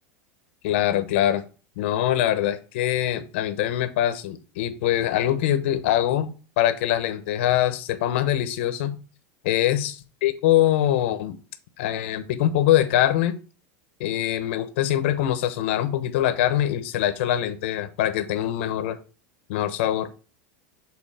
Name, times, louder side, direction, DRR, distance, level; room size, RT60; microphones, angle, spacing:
voice 1, 0.6-1.4 1.8-8.9 9.4-9.9 10.2-11.4 11.8-13.4 14.0-19.0 19.5-20.1, left 12 dB, 65° left, 10 dB, 1.0 m, -23 dB
7.9 x 4.0 x 4.1 m, 0.35 s
supercardioid pair, 170°, 7 cm